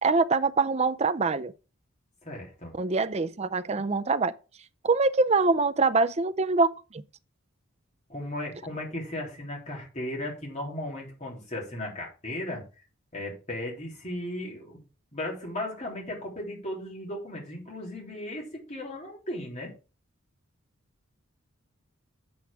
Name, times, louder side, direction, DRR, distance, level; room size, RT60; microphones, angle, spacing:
voice 1, 0.0-1.5 2.8-4.3 4.8-6.7 6.9-7.0, right 3 dB, 30° right, 0.5 m, -24 dB
voice 2, 2.2-2.7 8.1-12.6 13.1-14.8 15.1-19.7, left 1 dB, 35° left, 3.3 m, -36 dB
8.3 x 7.8 x 3.6 m
head